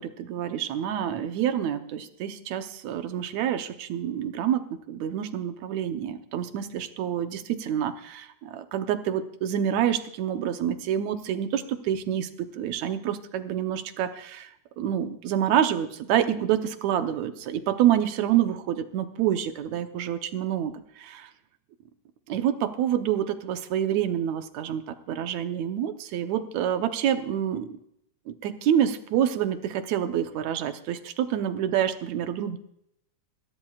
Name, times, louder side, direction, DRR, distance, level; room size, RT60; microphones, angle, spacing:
voice 1, 0.0-14.5 14.8-21.3 22.3-27.7 28.3-32.6, right 10 dB, 75° right, 8 dB, 2.2 m, -27 dB
21.5 x 15.0 x 2.4 m, 0.74 s
omnidirectional pair, 3.3 m